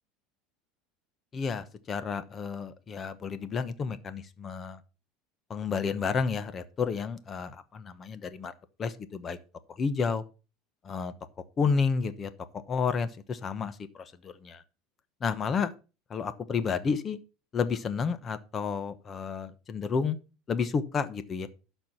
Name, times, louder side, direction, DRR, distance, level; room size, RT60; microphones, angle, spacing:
voice 1, 1.3-4.8 5.5-8.5 8.8-9.4 9.7-10.2 10.8-11.1 11.6-14.6 15.2-15.7 16.1-17.2 17.5-20.2 20.5-21.5, left 5 dB, 25° left, 13 dB, 1.0 m, -31 dB
12.0 x 4.6 x 5.8 m, 0.33 s
supercardioid pair, 145°, 0 cm